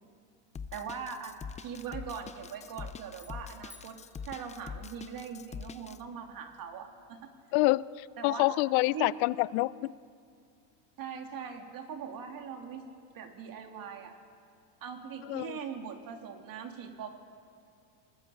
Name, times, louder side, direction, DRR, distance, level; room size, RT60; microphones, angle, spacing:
Drum kit, 0.5-6.0, left 6 dB, 15° left, 0.5 m, -43 dB
voice 1, 0.7-4.0 4.3-7.3 8.2-8.6 8.9-9.1 11.0-12.9 13.1-14.1 14.8-17.1, right 6 dB, 40° right, 4 dB, 2.9 m, -41 dB
sound 1, 3.1-5.4, left 2 dB, 5° right, 2.1 m, -59 dB
voice 2, 7.5-9.9 15.3-15.6, left 21 dB, 55° left, 20 dB, 0.7 m, -27 dB
27.0 x 19.5 x 8.6 m, 2.4 s
supercardioid pair, 110°, 50 cm